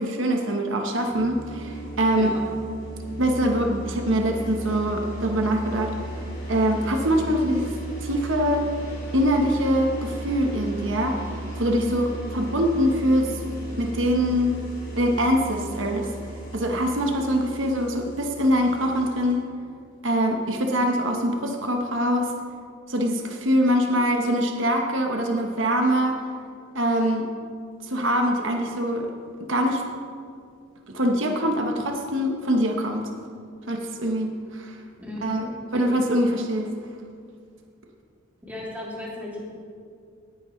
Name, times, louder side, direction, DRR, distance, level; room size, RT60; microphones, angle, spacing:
voice 1, 0.0-2.3 3.2-5.9 6.5-7.7 8.0-8.6 9.1-11.3 11.6-13.4 13.8-14.6 15.0-16.1 16.5-19.5 20.0-22.3 22.9-26.2 26.7-27.3 27.8-29.1 29.4-29.8 30.9-33.1 33.7-34.7 35.2-35.4 35.7-36.7, equal, 65° right, 3 dB, 1.1 m, -23 dB
sound 1, 1.1-19.3, right 1 dB, 45° left, 2.8 m, -36 dB
voice 2, 35.0-35.5 38.5-39.4, left 1 dB, 10° right, -6 dB, 2.6 m, -35 dB
18.0 x 9.7 x 3.2 m, 2.2 s
head